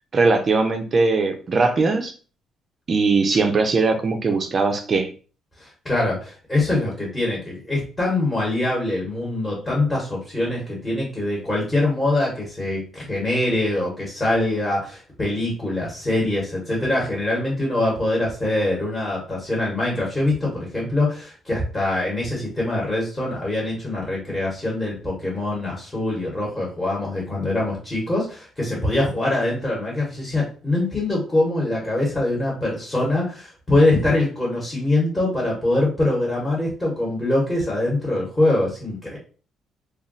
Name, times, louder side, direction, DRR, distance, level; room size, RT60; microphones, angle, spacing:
voice 1, 0.1-2.1 2.9-5.1, right 3 dB, 35° right, 5 dB, 0.4 m, -20 dB
voice 2, 5.6-39.2, left 2 dB, 15° left, -3 dB, 1.0 m, -23 dB
2.3 x 2.1 x 3.7 m, 0.38 s
cardioid pair, 130°, 0 cm